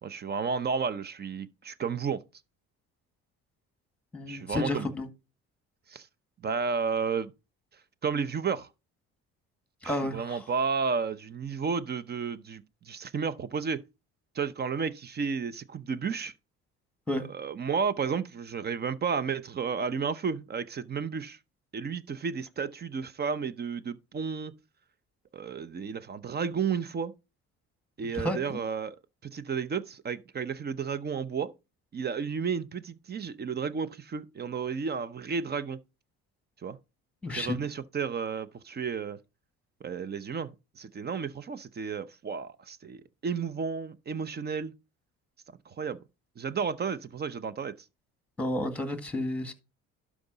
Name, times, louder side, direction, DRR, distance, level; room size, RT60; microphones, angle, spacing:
voice 1, 0.0-2.2 4.3-4.9 5.9-6.1 6.4-7.3 8.0-8.7 9.8-13.8 14.3-16.3 17.2-21.4 21.7-24.5 25.3-27.1 28.0-29.0 29.2-31.5 31.9-35.8 36.6-36.8 37.3-39.2 39.8-44.7 45.7-46.0 46.4-47.8, right 6 dB, 35° right, 0.7 m, -32 dB
voice 2, 4.1-5.1 9.8-10.4 17.1-17.2 28.2-28.4 37.2-37.5 48.4-49.5, left 1 dB, 5° left, 1.7 m, -31 dB
11.5 x 4.9 x 4.0 m
cardioid pair, 105°, 30 cm